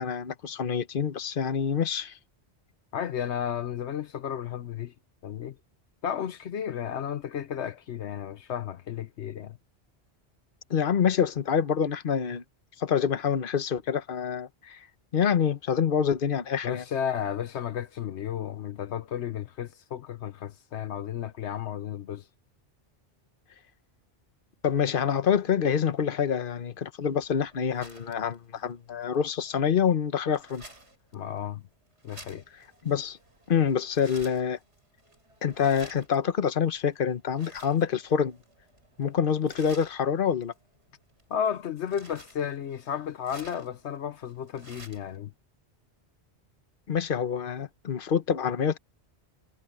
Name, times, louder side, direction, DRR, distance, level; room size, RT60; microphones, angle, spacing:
voice 1, 0.0-2.2 10.7-12.4 12.8-14.8 15.1-16.8 24.6-30.6 32.8-33.2 33.5-34.6 35.4-38.4 39.0-40.5 46.9-48.8, left 7 dB, 55° left, 1.2 m, -26 dB
voice 2, 2.9-4.9 5.2-5.6 6.0-9.6 16.6-22.3 31.1-31.6 32.0-32.4 41.3-45.3, left 9 dB, 80° left, 1.1 m, -33 dB
sound 1, 27.1-45.2, right 1 dB, 85° right, 6.7 m, -53 dB
omnidirectional pair, 1.1 m